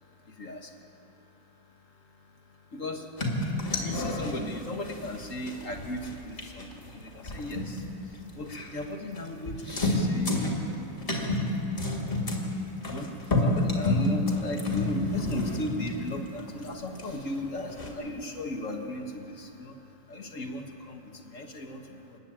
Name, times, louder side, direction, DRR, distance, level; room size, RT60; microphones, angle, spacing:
voice 1, 0.2-0.7 2.7-3.1 3.7-10.6 12.8-13.1 13.4-19.8 20.1-22.2, left 1 dB, 40° left, 3 dB, 1.6 m, -37 dB
sound 1, 3.2-8.8 9.1-9.2 9.5-11.5 11.8-16.7 16.9-17.9, left 2 dB, 25° left, 3.0 m, -29 dB
29.5 x 10.0 x 8.7 m, 2.9 s
omnidirectional pair, 2.2 m